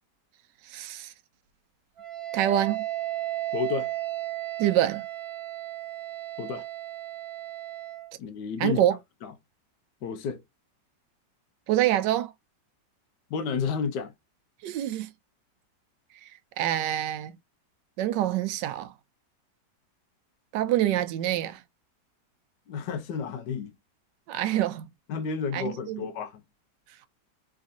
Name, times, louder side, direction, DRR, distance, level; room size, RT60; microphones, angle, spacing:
voice 1, 0.7-1.1 2.3-2.8 4.6-5.0 8.6-8.9 11.7-12.3 14.6-15.1 16.6-17.3 18.0-18.9 20.5-21.6 24.3-24.9 25.5-26.0, right 12 dB, 80° right, 1.2 m, -26 dB
Wind instrument woodwind instrument, 2.0-8.1, right 15 dB, 65° right, 0.6 m, -34 dB
voice 2, 3.5-3.9 6.4-6.6 8.2-8.8 9.2-9.3 10.0-10.4 13.3-14.1 22.7-23.7 25.1-26.4, left 6 dB, 75° left, 1.3 m, -31 dB
3.4 x 3.2 x 2.6 m
omnidirectional pair, 1.9 m